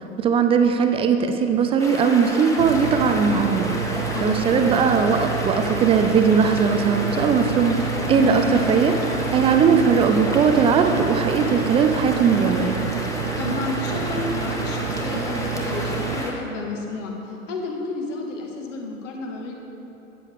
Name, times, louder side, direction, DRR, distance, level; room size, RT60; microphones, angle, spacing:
voice 1, 0.2-3.7 4.2-12.8, right 6 dB, 15° right, 6 dB, 0.4 m, -19 dB
sound 1, 1.8-16.3, left 1 dB, 10° left, 1.3 m, -31 dB
sound 2, 2.6-16.2, right 7 dB, 70° right, 0.7 m, -29 dB
voice 2, 4.1-4.6 8.1-8.4 13.1-19.5, left 3 dB, 60° left, 0 dB, 1.8 m, -31 dB
13.5 x 9.2 x 3.5 m, 3.0 s
figure-of-eight pair, 85°, 42 cm